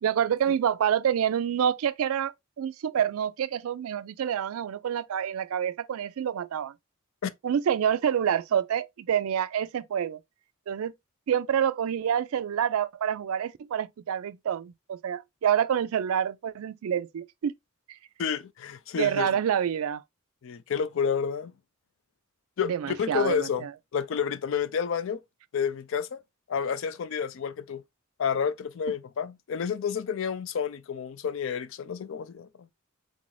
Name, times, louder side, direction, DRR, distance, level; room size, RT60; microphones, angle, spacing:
voice 1, 0.0-6.7 7.4-10.2 10.7-10.9 11.3-17.5 19.0-20.0 22.6-23.7, right 9 dB, 75° right, 0.3 m, -27 dB
voice 2, 18.2-19.3 20.4-21.5 22.6-23.7 23.9-25.2 25.5-26.2 26.5-27.8 28.2-32.5, left 7 dB, 60° left, 0.4 m, -30 dB
3.7 x 2.6 x 3.1 m
head